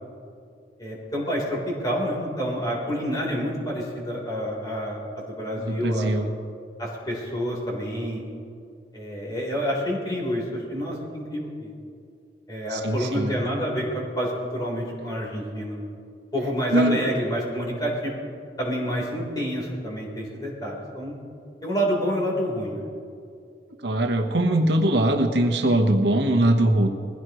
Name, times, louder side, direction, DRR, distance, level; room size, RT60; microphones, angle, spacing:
voice 1, 0.8-6.1 6.8-8.2 8.9-11.7 12.5-15.8 16.3-18.2 18.6-21.2 21.6-22.9, equal, 25° left, -3 dB, 3.8 m, -28 dB
voice 2, 5.6-6.3 12.7-13.3 16.7-17.0 23.8-26.9, right 1 dB, 75° right, 4 dB, 1.1 m, -21 dB
21.0 x 16.0 x 3.1 m, 2.4 s
head